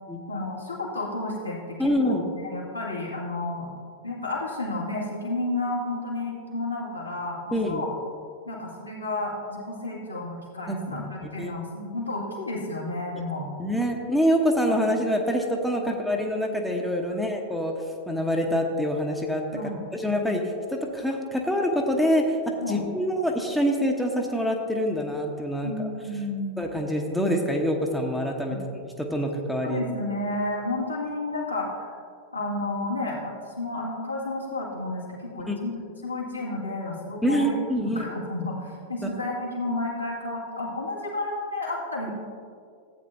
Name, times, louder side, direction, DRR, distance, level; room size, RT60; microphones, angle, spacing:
voice 1, 0.3-3.7 4.0-7.9 8.5-13.5 14.6-14.7 17.1-17.3 19.5-19.9 22.6-22.8 25.6-26.6 28.5-28.6 29.6-31.9 32.3-35.7 36.0-42.1, left 2 dB, 85° left, -5 dB, 2.1 m, -31 dB
voice 2, 1.8-2.2 7.5-7.8 10.7-10.8 11.4-11.5 13.6-17.7 18.1-19.4 19.9-20.4 20.7-22.4 22.7-25.7 26.6-28.6 29.0-29.8 35.5-35.6 37.2-38.0 39.0-39.1, equal, ahead, 1 dB, 1.0 m, -25 dB
15.0 x 8.6 x 2.7 m, 2.2 s
figure-of-eight pair, 90°, 0 cm